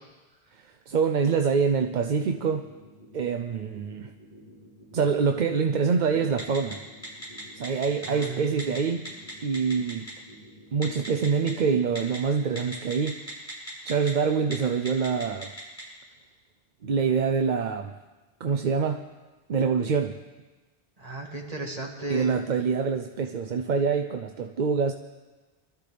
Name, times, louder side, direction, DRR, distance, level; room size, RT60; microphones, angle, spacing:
voice 1, 0.5-2.7 3.1-4.1 4.9-6.8 7.6-9.1 9.4-10.1 10.7-13.2 13.8-15.5 16.8-17.9 18.4-19.1 19.5-20.2 22.1-24.9, right 5 dB, 55° right, 7 dB, 0.6 m, -25 dB
sound 1, 2.2-12.0, left 1 dB, 45° left, 7.0 m, -51 dB
Telephone, 6.4-6.7 7.0-8.2 8.6-8.8 9.0-10.1 10.8-11.5 12.0-12.2 12.6-14.1 14.4-14.5 14.9-15.8, right 1 dB, 15° left, 5.8 m, -36 dB
voice 2, 8.0-8.7 21.0-22.4, right 2 dB, 40° right, -1 dB, 2.1 m, -35 dB
24.0 x 13.0 x 3.4 m, 1.2 s
omnidirectional pair, 1.0 m